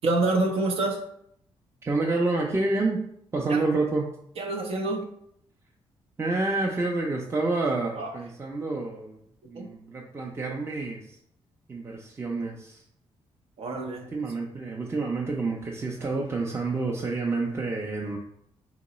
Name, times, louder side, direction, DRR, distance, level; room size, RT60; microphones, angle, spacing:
voice 1, 0.0-1.0 3.5-3.6 4.4-5.1 8.0-8.1 9.5-9.7 13.6-14.1, right 2 dB, 75° right, 3 dB, 0.7 m, -27 dB
voice 2, 1.8-3.0 3.3-4.1 6.2-9.2 9.4-11.2 11.7-12.8 14.1-18.2, right 3 dB, 25° right, -2 dB, 0.5 m, -28 dB
3.0 x 2.8 x 4.1 m, 0.70 s
cardioid pair, 85°, 10 cm